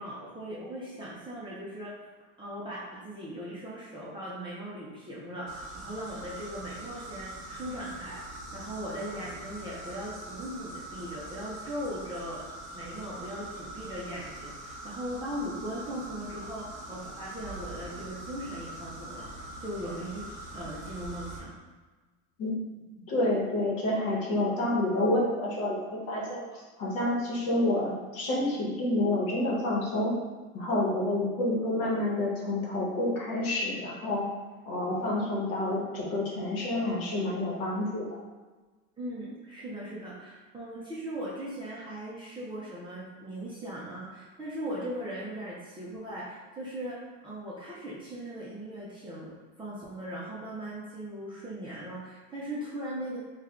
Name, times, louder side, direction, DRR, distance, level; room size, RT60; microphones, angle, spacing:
voice 1, 0.0-1.9 2.4-20.3 20.5-21.5 39.0-53.2, equal, 15° right, -8 dB, 0.4 m, -39 dB
sound 1, 5.5-21.4, right 1 dB, 30° right, 0.9 m, -43 dB
voice 2, 23.1-30.1 30.5-34.2 34.7-38.2, left 1 dB, 60° left, -3 dB, 1.1 m, -29 dB
3.2 x 2.3 x 3.6 m, 1.3 s
supercardioid pair, 145°, 39 cm